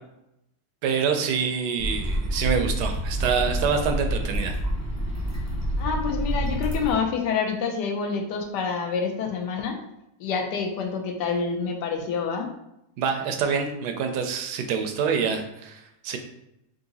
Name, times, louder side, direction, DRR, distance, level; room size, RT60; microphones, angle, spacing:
voice 1, 0.8-4.6 13.0-16.2, right 6 dB, 75° right, 5 dB, 1.1 m, -26 dB
sound 1, 1.8-6.9, equal, 15° left, 0.7 m, -28 dB
voice 2, 5.8-9.8 10.2-12.5, left 5 dB, 80° left, 4 dB, 1.2 m, -27 dB
3.8 x 2.6 x 3.9 m, 0.83 s
omnidirectional pair, 1.8 m